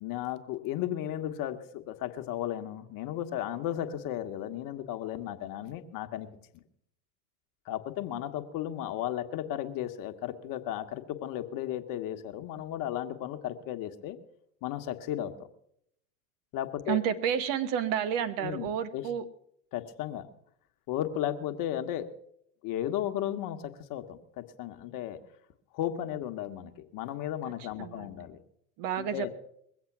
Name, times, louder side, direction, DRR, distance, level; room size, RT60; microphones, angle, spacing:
voice 1, 0.0-6.3 6.5-6.6 7.7-14.2 14.6-15.3 16.5-17.0 18.4-19.1 19.7-20.3 20.9-22.1 22.6-25.2 25.7-28.4 29.0-29.3, left 12 dB, 45° left, 7 dB, 1.3 m, -35 dB
voice 2, 16.9-19.2 27.8-28.1 28.8-29.4, right 9 dB, 50° right, 12 dB, 1.1 m, -30 dB
21.5 x 8.0 x 6.0 m, 0.72 s
hypercardioid pair, 100°, 45 cm